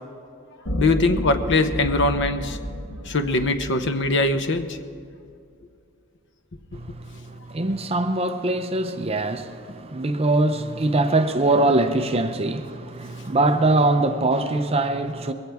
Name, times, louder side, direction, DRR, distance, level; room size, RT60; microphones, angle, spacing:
sound 1, 0.7-5.0, equal, 75° left, 1.8 m, -32 dB
voice 1, 0.8-2.6 3.0-4.8 6.7-6.8, left 2 dB, 60° left, 0.8 m, -22 dB
voice 2, 6.7-15.3, right 2 dB, 30° right, 0.6 m, -22 dB
21.5 x 16.5 x 3.5 m
head